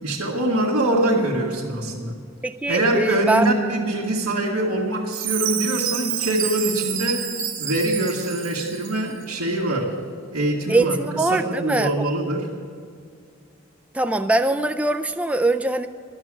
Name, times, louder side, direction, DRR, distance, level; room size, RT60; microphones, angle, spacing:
voice 1, 0.0-2.2 2.7-7.2 7.6-10.0 10.3-12.5, right 1 dB, 85° right, -5 dB, 1.6 m, -23 dB
voice 2, 2.4-3.5 10.7-12.1 13.9-15.9, right 2 dB, 5° right, 7 dB, 0.3 m, -22 dB
Chime, 5.1-9.1, right 10 dB, 60° right, 1.9 m, -28 dB
12.0 x 7.5 x 10.0 m, 2.2 s
head